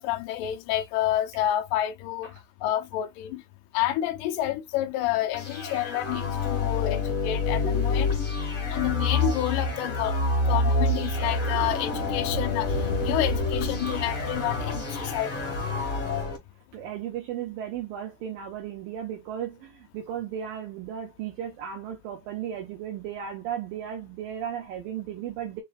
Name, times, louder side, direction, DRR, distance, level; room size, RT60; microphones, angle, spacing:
voice 1, 0.0-2.3 2.6-3.4 3.7-8.2 8.7-10.2 10.5-12.7 13.0-15.3, left 13 dB, 85° left, 1.9 m, -29 dB
sound 1, 5.3-16.4, left 3 dB, 60° left, 0.8 m, -27 dB
voice 2, 16.7-25.6, right 9 dB, 70° right, 2.4 m, -35 dB
5.9 x 3.2 x 2.4 m
omnidirectional pair, 4.7 m